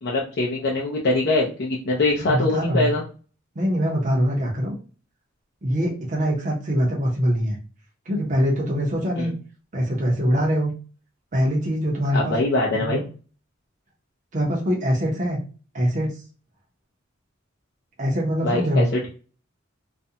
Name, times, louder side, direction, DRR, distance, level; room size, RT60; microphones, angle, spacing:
voice 1, 0.0-3.0 9.2-9.3 12.1-13.0 18.4-19.1, left 2 dB, 55° left, -3 dB, 0.5 m, -23 dB
voice 2, 2.2-2.9 3.6-4.8 5.6-7.6 8.1-9.3 9.7-10.7 11.3-12.4 12.7-13.1 14.3-15.4 15.7-16.1 18.0-18.9, equal, 40° right, -1 dB, 0.6 m, -23 dB
2.4 x 2.1 x 2.7 m, 0.37 s
head